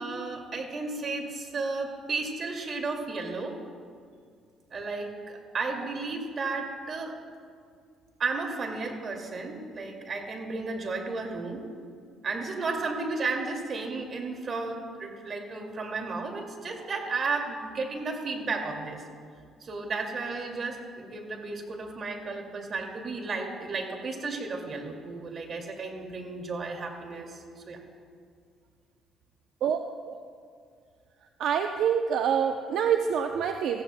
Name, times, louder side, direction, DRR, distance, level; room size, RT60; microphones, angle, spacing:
voice 1, 0.0-3.6 4.7-7.1 8.2-11.6 12.2-19.0 19.6-27.8, right 3 dB, 50° right, 2 dB, 2.2 m, -33 dB
voice 2, 31.4-33.8, right 8 dB, 70° right, 5 dB, 0.6 m, -26 dB
18.5 x 15.0 x 2.2 m, 2.2 s
supercardioid pair, 70°, 0 cm